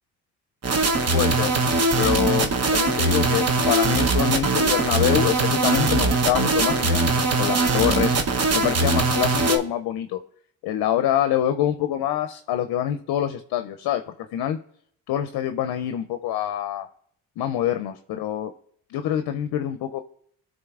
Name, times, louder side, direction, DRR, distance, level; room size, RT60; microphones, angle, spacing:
sound 1, 0.6-9.6, right 3 dB, 40° right, 0.9 m, -21 dB
voice 1, 1.1-1.5 2.0-8.2 8.5-10.2 10.6-14.0 14.3-14.6 15.1-16.9 17.4-18.5 18.9-20.0, left 11 dB, 75° left, 8 dB, 0.5 m, -25 dB
11.0 x 3.8 x 2.4 m, 0.63 s
supercardioid pair, 60°, 38 cm